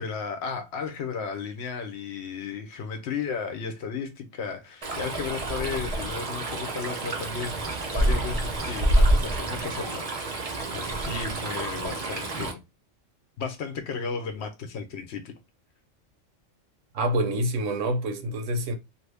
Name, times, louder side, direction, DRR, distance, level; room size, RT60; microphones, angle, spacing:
voice 1, 0.0-10.1 10.7-12.6 13.4-15.3, left 5 dB, 65° left, 0.8 m, -34 dB
Stream, 4.8-12.5, right 1 dB, 40° right, 0.6 m, -27 dB
voice 2, 16.9-18.7, right 1 dB, 75° right, 1.0 m, -26 dB
2.6 x 2.6 x 3.3 m
omnidirectional pair, 1.3 m